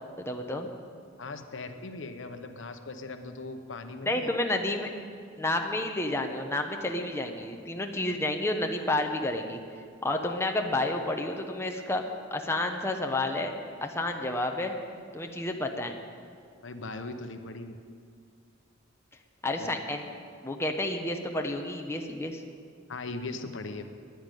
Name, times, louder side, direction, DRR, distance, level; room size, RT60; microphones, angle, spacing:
voice 1, 0.2-0.7 4.0-4.9 5.4-9.6 10.0-12.0 12.3-13.5 13.8-14.7 15.1-16.0 19.4-20.1 20.4-22.4, left 1 dB, 15° left, 3 dB, 0.9 m, -30 dB
voice 2, 1.2-4.3 16.6-17.8 19.6-19.7 22.9-23.8, left 3 dB, 70° left, 7 dB, 0.9 m, -39 dB
10.0 x 10.0 x 9.2 m, 2.2 s
head